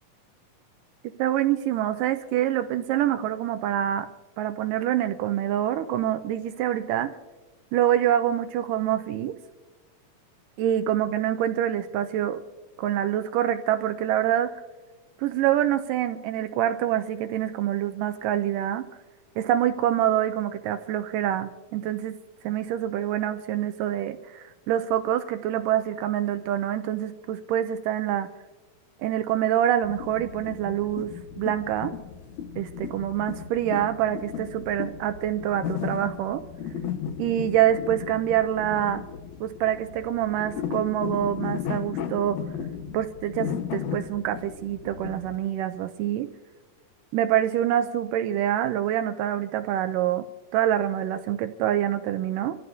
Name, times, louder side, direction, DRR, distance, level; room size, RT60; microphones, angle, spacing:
voice 1, 1.2-4.1 4.4-7.1 7.7-9.4 10.6-12.4 12.8-14.5 15.2-18.8 19.4-22.2 22.4-28.3 29.0-31.9 32.6-36.4 37.2-39.0 39.4-42.4 42.9-46.3 47.1-50.3 50.5-52.6, right 11 dB, 80° right, 9 dB, 2.0 m, -26 dB
sound 1, 29.8-45.3, left 8 dB, 70° left, 2.0 m, -35 dB
27.5 x 14.0 x 2.7 m, 1.3 s
omnidirectional pair, 4.1 m